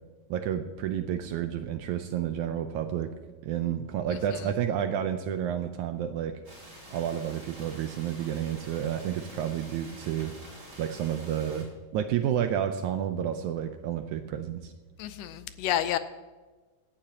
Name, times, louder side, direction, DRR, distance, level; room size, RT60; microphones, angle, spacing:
voice 1, 0.3-3.1 3.4-6.4 6.9-10.3 10.8-11.7 11.9-14.7, right 9 dB, 80° right, 8 dB, 1.8 m, -30 dB
voice 2, 4.1-4.4 15.0-16.0, left 12 dB, 80° left, 11 dB, 2.1 m, -30 dB
sound 1, 6.4-11.6, equal, 30° right, 5.3 m, -48 dB
17.5 x 12.0 x 2.8 m, 1.3 s
omnidirectional pair, 3.9 m